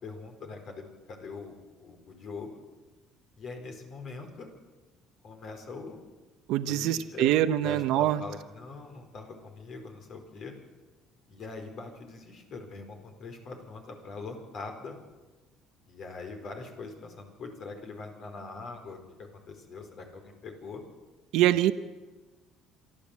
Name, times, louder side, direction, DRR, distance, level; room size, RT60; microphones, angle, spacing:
voice 1, 0.0-2.6 3.4-4.5 5.2-6.0 6.6-7.4 7.6-10.5 11.3-15.0 15.9-20.8, left 3 dB, 55° left, 4 dB, 4.6 m, -42 dB
voice 2, 6.5-8.2 21.3-21.7, right 13 dB, 75° right, 11 dB, 0.8 m, -24 dB
27.0 x 11.5 x 8.6 m, 1.2 s
cardioid pair, 105°, 0 cm